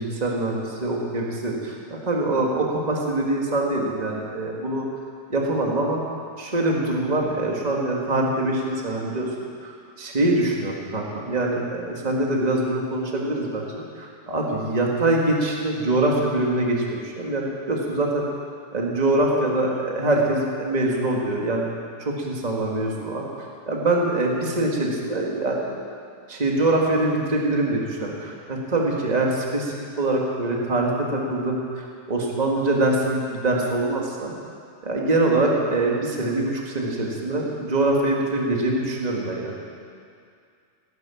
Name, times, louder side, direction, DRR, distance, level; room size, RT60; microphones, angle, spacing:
voice 1, 0.0-4.8 5.3-6.0 6.4-9.3 9.6-9.7 10.0-18.2 18.7-21.7 22.0-23.2 23.7-25.7 26.3-34.3 34.8-39.6, right 2 dB, 15° right, -1 dB, 1.6 m, -24 dB
17.0 x 10.5 x 7.2 m, 2.3 s
omnidirectional pair, 3.3 m